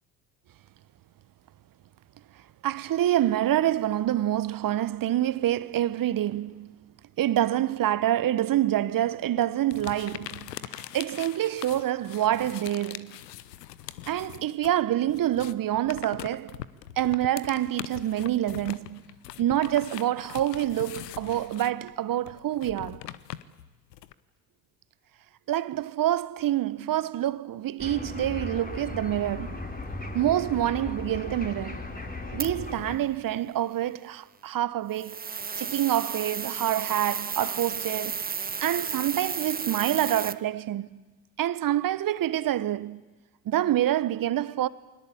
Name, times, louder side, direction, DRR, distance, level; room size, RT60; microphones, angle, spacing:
voice 1, 2.6-6.9 7.2-13.2 14.1-16.6 17.0-19.0 19.4-23.0 25.5-29.7 30.1-31.8 32.3-35.3 35.6-38.3 38.6-41.0 41.4-43.0 43.4-44.7, right 12 dB, 45° right, 1.2 m, -27 dB
sound 1, 9.7-14.8 15.0-24.1, left 13 dB, 85° left, 1.0 m, -42 dB
sound 2, 27.8-33.0, left 2 dB, 20° left, 4.2 m, -37 dB
sound 3, 32.4-32.5 34.9-40.3, right 5 dB, 20° right, 1.0 m, -33 dB
29.0 x 22.0 x 8.7 m
hypercardioid pair, 65°, 48 cm